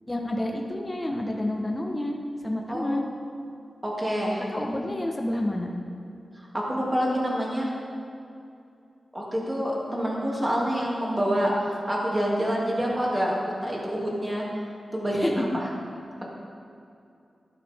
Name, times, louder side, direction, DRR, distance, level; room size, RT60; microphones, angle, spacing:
voice 1, 0.1-2.2 2.4-3.1 4.5-5.7 15.1-15.3, left 1 dB, 20° left, 0 dB, 1.3 m, -29 dB
voice 2, 2.7-3.0 3.8-4.4 6.3-7.7 9.1-14.4 14.9-15.4, equal, 20° right, -4 dB, 2.8 m, -27 dB
13.5 x 11.0 x 3.7 m, 2.6 s
wide cardioid pair, 80°, 0 cm